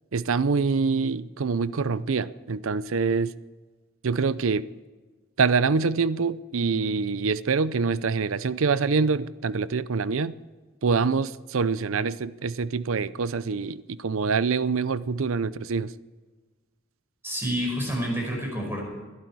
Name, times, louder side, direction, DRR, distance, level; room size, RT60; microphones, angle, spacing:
voice 1, 0.1-3.3 4.0-4.6 5.4-10.3 10.8-15.9, right 4 dB, 80° right, 17 dB, 0.6 m, -25 dB
voice 2, 17.2-18.8, equal, 10° right, -1 dB, 5.4 m, -28 dB
21.0 x 12.0 x 4.7 m, 1.3 s
head